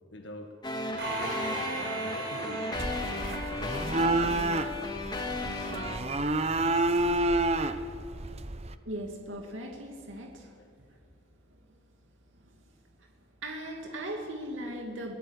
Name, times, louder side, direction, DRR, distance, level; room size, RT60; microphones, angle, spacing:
voice 1, 0.1-0.5 1.1-4.7 10.6-10.7, left 1 dB, 65° left, 4 dB, 1.7 m, -45 dB
sound 1, 0.6-6.0, left 2 dB, 20° left, 2.0 m, -35 dB
sound 2, 1.0-4.6, right 2 dB, 55° right, 6.5 m, -37 dB
sound 3, 2.8-8.7, right 2 dB, 30° right, 0.8 m, -29 dB
voice 2, 8.9-10.5 10.9-11.0 12.3-12.6 13.4-15.1, right 1 dB, 85° right, 2 dB, 2.4 m, -38 dB
23.0 x 16.5 x 8.3 m, 2.1 s
head